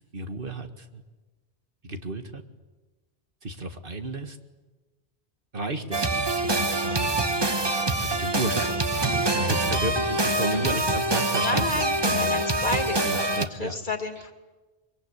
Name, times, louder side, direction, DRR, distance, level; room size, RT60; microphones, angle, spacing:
voice 1, 0.1-1.0 1.8-2.4 3.4-4.4 5.5-12.7 13.0-13.8, right 2 dB, 55° right, 7 dB, 2.0 m, -33 dB
sound 1, 5.9-13.5, right 2 dB, 25° right, 1.2 m, -25 dB
voice 2, 10.5-10.8 11.4-14.3, left 2 dB, 50° left, 7 dB, 2.5 m, -32 dB
23.5 x 22.5 x 10.0 m, 1.2 s
omnidirectional pair, 1.1 m